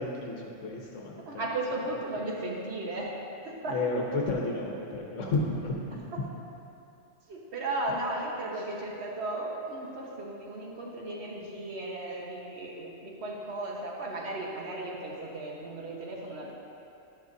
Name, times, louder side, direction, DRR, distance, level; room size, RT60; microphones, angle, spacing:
voice 1, 0.0-1.5 3.7-6.0, left 2 dB, 75° left, -1 dB, 1.3 m, -32 dB
voice 2, 1.2-3.1 3.4-3.8 7.3-16.5, right 2 dB, 55° right, -3 dB, 1.6 m, -35 dB
12.5 x 11.0 x 2.7 m, 2.7 s
omnidirectional pair, 1.3 m